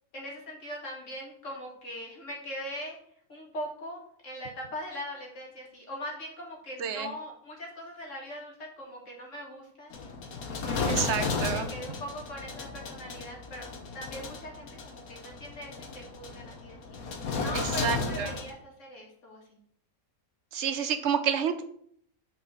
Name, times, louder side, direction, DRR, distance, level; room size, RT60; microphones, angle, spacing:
voice 1, 0.1-3.0 3.3-9.9 10.5-11.1 11.4-13.7 13.9-19.6, equal, 60° left, -2 dB, 2.1 m, -41 dB
voice 2, 6.8-7.1 10.8-11.7 17.5-18.3 20.5-21.6, right 7 dB, 60° right, 9 dB, 0.9 m, -29 dB
sound 1, 9.9-18.5, left 4 dB, 85° left, 1.4 m, -34 dB
5.7 x 4.4 x 5.4 m, 0.65 s
omnidirectional pair, 1.5 m